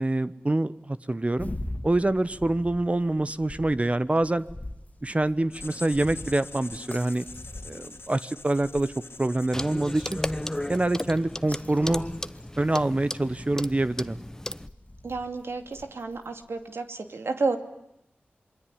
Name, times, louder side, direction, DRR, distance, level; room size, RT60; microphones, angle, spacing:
voice 1, 0.0-1.5 1.8-4.4 5.0-7.2 7.6-8.9 9.2-10.2 10.7-12.0 12.6-14.2, right 2 dB, 30° right, 14 dB, 1.1 m, -25 dB
sound 1, 1.3-16.5, left 1 dB, 35° left, 2.6 m, -43 dB
Writing, 5.5-11.5, left 3 dB, 75° left, 2.8 m, -45 dB
Clock, 9.5-14.7, left 1 dB, 15° left, 1.0 m, -34 dB
voice 2, 15.0-17.6, right 3 dB, 85° right, 7 dB, 2.6 m, -31 dB
27.0 x 22.0 x 10.0 m, 0.82 s
cardioid pair, 40°, 4 cm